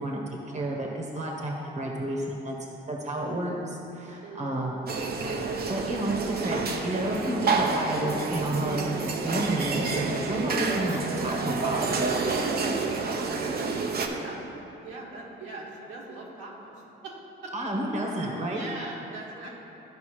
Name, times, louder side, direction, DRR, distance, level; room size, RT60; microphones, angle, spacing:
voice 1, 0.0-2.5 2.9-4.8 5.7-12.0 17.5-18.7, right 1 dB, 35° right, -1 dB, 1.3 m, -31 dB
voice 2, 4.2-4.8 6.0-6.3 13.4-14.4 14.8-17.2 17.4-17.5 18.3-19.5, right 3 dB, 85° right, -5 dB, 1.9 m, -41 dB
sound 1, 4.9-14.1, right 4 dB, 50° right, 0.9 m, -29 dB
13.5 x 5.1 x 3.2 m, 3.0 s
cardioid pair, 90°, 20 cm